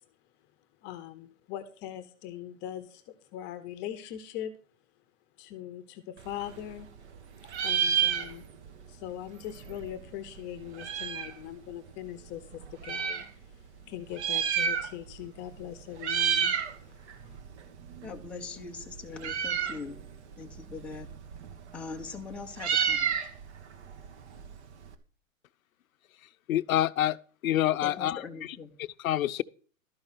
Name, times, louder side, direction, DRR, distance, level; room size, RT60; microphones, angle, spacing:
voice 1, 0.8-4.5 5.4-6.9 7.6-8.4 8.9-17.4, left 11 dB, 25° left, 0.8 m, -41 dB
Meow, 6.2-7.2 7.4-8.7 9.0-9.1 9.3-11.4 12.1-13.3 14.0-15.2 15.5-15.7 16.0-16.7 17.1-24.9, right 8 dB, 55° right, 1.4 m, -31 dB
voice 2, 18.0-20.0 20.4-21.1 21.7-23.2 27.8-28.7, left 5 dB, 5° left, 0.4 m, -41 dB
voice 3, 26.5-27.2 27.4-28.2 29.0-29.4, left 12 dB, 85° left, 0.6 m, -26 dB
12.5 x 5.5 x 6.1 m
hypercardioid pair, 135°, 40 cm